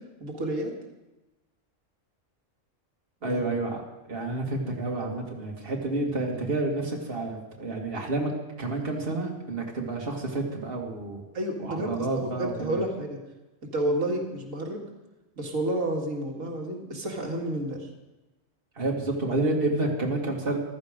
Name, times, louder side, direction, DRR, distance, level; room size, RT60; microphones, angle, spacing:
voice 1, 0.2-0.7 3.2-3.4 11.3-13.2 13.7-14.8 15.4-17.9, right 1 dB, 90° right, 0 dB, 2.4 m, -30 dB
voice 2, 3.2-3.8 4.1-8.3 8.6-11.2 11.6-12.8 18.8-20.6, right 2 dB, 45° right, -1 dB, 2.4 m, -29 dB
15.0 x 13.5 x 5.2 m, 1.0 s
omnidirectional pair, 1.3 m